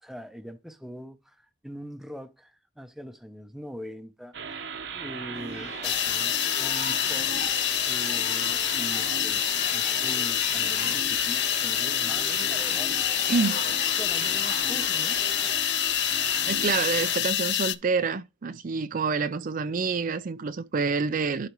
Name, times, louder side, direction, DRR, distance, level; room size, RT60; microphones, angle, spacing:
voice 1, 0.0-7.5 7.8-15.7, equal, ahead, 0.7 m, -43 dB
sound 1, 4.3-17.2, right 6 dB, 70° right, 1.1 m, -37 dB
sound 2, 5.3-15.5, left 5 dB, 40° left, 0.8 m, -41 dB
sound 3, 5.8-17.8, left 13 dB, 65° left, 0.5 m, -27 dB
voice 2, 13.3-13.6 16.4-21.5, right 4 dB, 50° right, 0.5 m, -27 dB
11.5 x 4.2 x 3.1 m
head